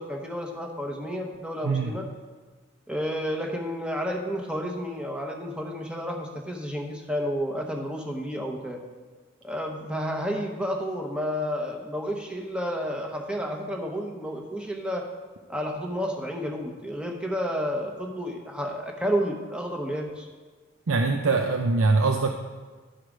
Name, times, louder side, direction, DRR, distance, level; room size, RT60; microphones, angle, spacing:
voice 1, 0.0-2.0 2.9-8.8 9.4-15.0 15.5-20.3, equal, 5° right, 1 dB, 0.9 m, -31 dB
voice 2, 20.9-22.3, right 3 dB, 75° right, 3 dB, 0.6 m, -23 dB
11.5 x 4.7 x 5.0 m, 1.4 s
head